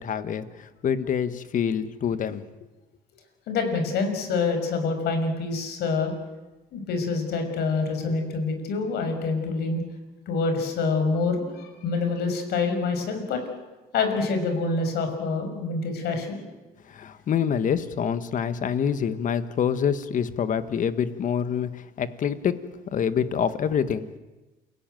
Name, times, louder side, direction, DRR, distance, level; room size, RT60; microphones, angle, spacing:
voice 1, 0.0-2.4 16.8-22.6 22.9-24.1, left 8 dB, 50° left, 12 dB, 1.6 m, -26 dB
voice 2, 3.5-6.1 6.7-9.8 10.3-13.4 13.9-16.4, left 4 dB, 75° left, 6 dB, 5.8 m, -26 dB
28.5 x 17.0 x 9.2 m, 1.1 s
cardioid pair, 110°, 17 cm